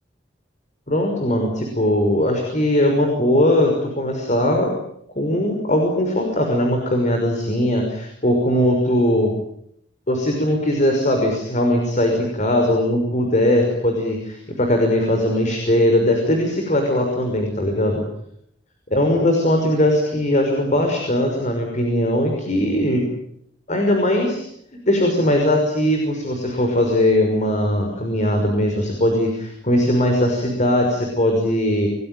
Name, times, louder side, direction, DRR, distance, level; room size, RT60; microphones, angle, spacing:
voice 1, 0.9-4.7 5.2-9.3 10.1-18.0 18.9-23.0 23.7-24.4 24.9-31.9, left 1 dB, 45° left, 3 dB, 5.9 m, -19 dB
28.5 x 20.0 x 9.4 m, 0.72 s
head